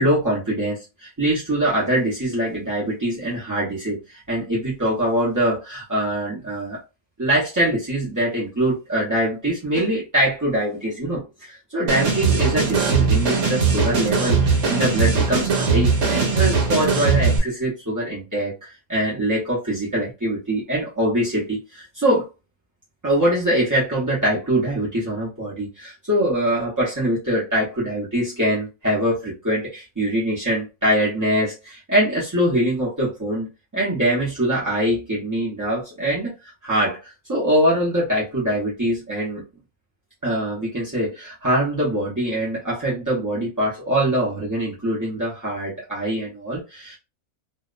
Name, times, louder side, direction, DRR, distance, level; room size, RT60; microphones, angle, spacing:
voice 1, 0.0-6.8 7.2-22.3 23.0-36.3 36.6-39.4 40.2-47.0, right 1 dB, 25° right, -7 dB, 0.4 m, -23 dB
sound 1, 11.9-17.4, right 5 dB, 65° right, 1.0 m, -20 dB
2.7 x 2.0 x 2.3 m, 0.27 s
omnidirectional pair, 1.5 m